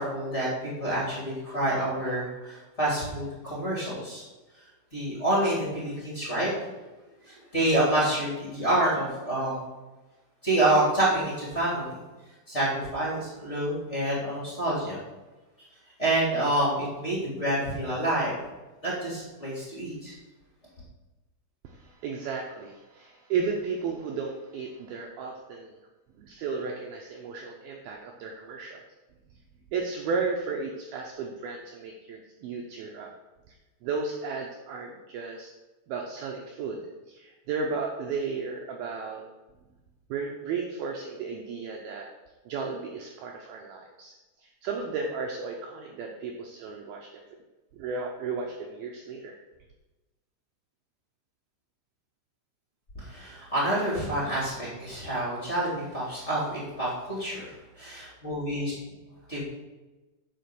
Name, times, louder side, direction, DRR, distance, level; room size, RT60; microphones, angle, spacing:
voice 1, 0.0-4.2 4.9-6.5 7.2-9.7 10.4-12.0 12.5-15.0 16.0-18.4 18.8-20.1 52.9-58.7 59.3-59.4, right 1 dB, 20° left, -6 dB, 2.2 m, -28 dB
voice 2, 21.6-25.8 26.2-28.8 29.7-33.1 33.5-33.6 33.8-35.5 35.9-39.3 40.1-42.1 42.5-47.2 47.7-49.4, right 4 dB, 85° right, 1 dB, 2.1 m, -34 dB
10.0 x 5.6 x 6.9 m, 1.1 s
omnidirectional pair, 5.6 m